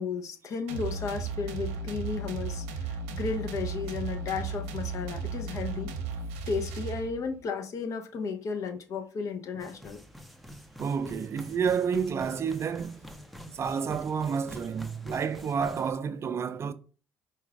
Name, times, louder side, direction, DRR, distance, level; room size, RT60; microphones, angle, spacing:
voice 1, 0.0-5.9 6.5-10.0, left 5 dB, 55° left, 0.8 m, -34 dB
sound 1, 0.7-7.4, right 5 dB, 85° right, 0.7 m, -35 dB
sound 2, 9.6-15.9, equal, ahead, 0.6 m, -46 dB
voice 2, 10.8-13.0 13.5-16.7, right 6 dB, 45° right, 0.4 m, -30 dB
4.7 x 2.4 x 3.4 m
hypercardioid pair, 65°, 6 cm